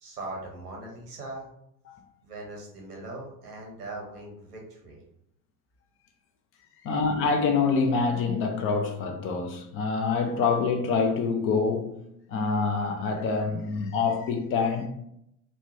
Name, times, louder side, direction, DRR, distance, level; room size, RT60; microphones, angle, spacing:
voice 1, 0.0-1.5 2.2-5.0, right 2 dB, 85° right, 0.9 m, -40 dB
voice 2, 6.8-12.0 12.3-14.9, left 4 dB, 30° left, 0.4 m, -26 dB
3.0 x 2.1 x 2.6 m
figure-of-eight pair, 70°, 45 cm